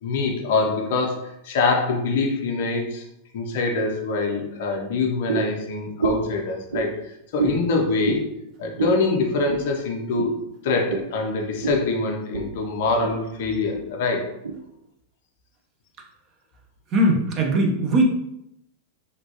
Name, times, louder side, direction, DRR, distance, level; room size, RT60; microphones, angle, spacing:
voice 1, 0.0-3.0 3.3-8.3 8.6-10.4 10.6-14.3, left 3 dB, 55° left, 1 dB, 0.6 m, -24 dB
sound 1, 5.3-5.6 6.0-6.3 6.7-6.9 7.4-7.6 8.0-8.2 8.8-9.0 9.5-9.6 10.1-10.3 10.9-11.1 11.6-11.8 12.3-12.5 12.8-13.2 13.7-13.8 14.4-14.6, right 5 dB, 75° right, 0.5 m, -26 dB
voice 2, 16.9-18.0, right 1 dB, 30° right, 0 dB, 0.6 m, -20 dB
3.1 x 2.6 x 2.8 m, 0.79 s
figure-of-eight pair, 90°, 0 cm